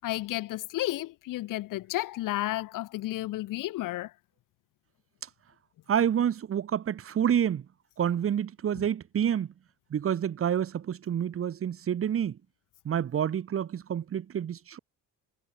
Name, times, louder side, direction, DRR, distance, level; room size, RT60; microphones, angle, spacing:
voice 1, 0.0-4.1, left 16 dB, 85° left, 6.6 m, -32 dB
voice 2, 5.9-7.7 8.0-9.5 9.9-12.4 12.8-14.8, right 9 dB, 45° right, 7.3 m, -28 dB
cardioid pair, 145°, 31 cm